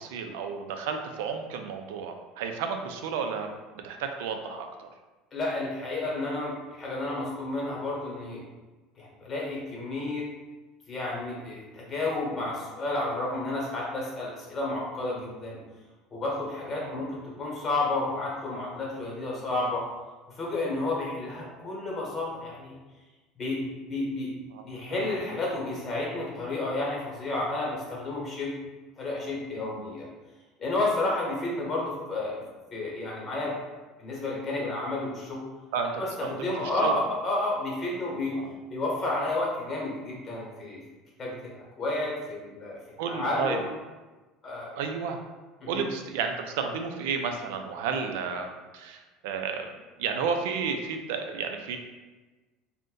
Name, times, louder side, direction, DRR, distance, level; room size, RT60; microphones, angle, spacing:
voice 1, 0.0-3.5 3.8-4.9 16.8-17.0 24.5-25.2 29.6-29.8 35.7-37.0 38.1-38.5 43.0-43.6 44.8-45.2 45.7-49.7 50.0-51.8, right 6 dB, 85° right, 5 dB, 0.4 m, -32 dB
voice 2, 5.3-8.4 9.0-10.3 10.9-15.6 16.1-19.8 20.4-22.8 23.4-28.5 29.0-30.1 30.6-32.4 32.7-33.6 34.0-35.5 36.0-38.4 38.7-40.8 41.2-42.8 43.1-43.6 44.4-44.7 45.6-45.8, left 2 dB, 30° left, -3 dB, 0.9 m, -31 dB
2.5 x 2.1 x 3.7 m, 1.2 s
cardioid pair, 140°, 0 cm